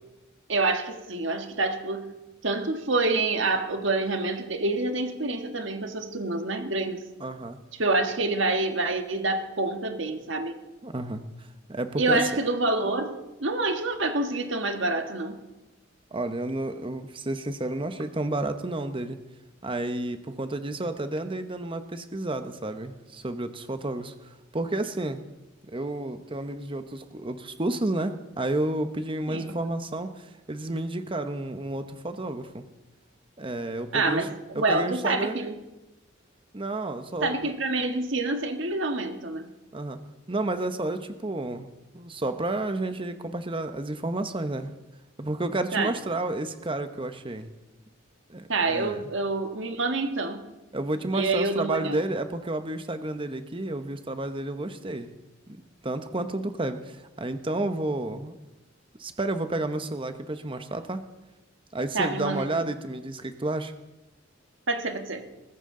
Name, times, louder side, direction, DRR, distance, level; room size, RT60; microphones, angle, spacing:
voice 1, 0.5-2.1 2.4-7.0 7.7-10.6 12.0-15.4 29.3-29.5 33.9-35.5 37.2-39.5 45.7-45.9 48.5-50.4 51.1-52.0 61.9-62.6 64.7-65.3, right 2 dB, 65° right, 6 dB, 1.5 m, -27 dB
voice 2, 7.2-7.6 10.8-11.2 11.7-12.2 16.1-19.2 19.6-25.2 25.7-32.6 33.4-34.3 34.5-35.4 36.5-37.5 39.7-40.0 40.3-41.7 41.9-44.7 45.2-47.5 48.3-49.0 50.7-55.1 55.5-55.6 55.8-58.4 59.0-61.0 61.7-63.7, right 2 dB, 25° right, 9 dB, 0.9 m, -31 dB
22.0 x 15.0 x 3.8 m, 1.0 s
head